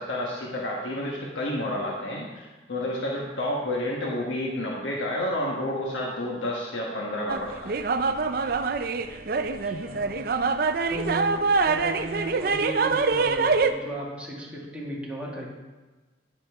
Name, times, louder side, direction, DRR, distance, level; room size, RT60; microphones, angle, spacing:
voice 1, 0.0-7.8, left 1 dB, 85° left, -2 dB, 1.3 m, -30 dB
sound 1, 7.3-13.7, right 4 dB, 50° right, 0.5 m, -25 dB
voice 2, 9.3-10.3 10.9-15.5, right 1 dB, 5° right, -5 dB, 2.0 m, -35 dB
10.0 x 9.2 x 3.5 m, 1.2 s
head